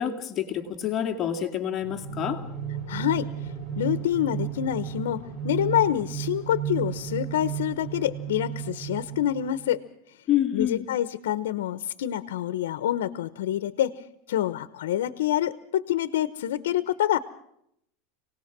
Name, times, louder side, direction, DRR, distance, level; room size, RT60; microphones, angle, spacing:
voice 1, 0.0-2.4 10.3-10.8, left 10 dB, 30° left, 4 dB, 2.2 m, -27 dB
sound 1, 1.8-9.7, right 10 dB, 15° right, 6.7 m, -34 dB
voice 2, 2.9-9.8 10.5-13.9 14.3-17.2, left 12 dB, 90° left, 13 dB, 1.0 m, -27 dB
27.5 x 18.5 x 6.1 m, 0.74 s
supercardioid pair, 145°, 0 cm